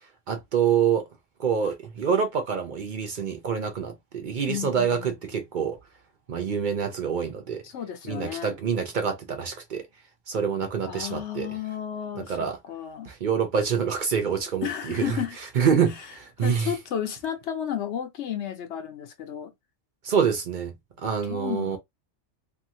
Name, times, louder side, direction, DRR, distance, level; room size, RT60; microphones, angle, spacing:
voice 1, 0.3-1.0 1.4-5.8 6.3-7.6 8.1-9.8 10.3-11.5 12.1-12.6 13.0-15.2 15.5-16.7 20.0-21.8, right 7 dB, 55° right, 0.6 m, -26 dB
voice 2, 4.5-5.2 7.6-8.6 10.9-12.4 12.6-13.1 14.6-15.4 16.4-19.5 21.3-21.8, left 9 dB, 70° left, 0.9 m, -32 dB
2.7 x 2.6 x 2.7 m
omnidirectional pair, 1.3 m